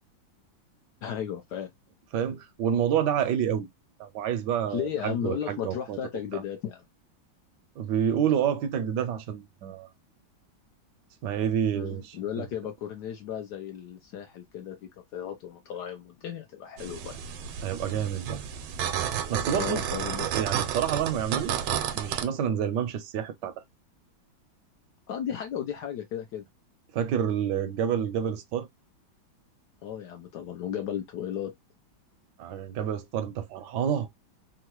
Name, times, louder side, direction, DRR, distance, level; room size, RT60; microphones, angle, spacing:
voice 1, 1.0-1.7 4.7-6.8 11.7-17.2 19.5-20.3 25.1-26.4 29.8-31.5, left 9 dB, 70° left, 1.0 m, -35 dB
voice 2, 2.1-3.7 4.0-6.0 6.3-6.4 7.8-9.9 11.2-12.5 17.6-18.4 19.3-19.8 20.2-21.5 21.9-23.5 26.9-28.7 32.4-34.1, right 9 dB, 70° right, 1.1 m, -28 dB
sound 1, 16.8-22.2, right 9 dB, 85° right, 1.4 m, -31 dB
3.6 x 2.1 x 2.9 m
omnidirectional pair, 2.2 m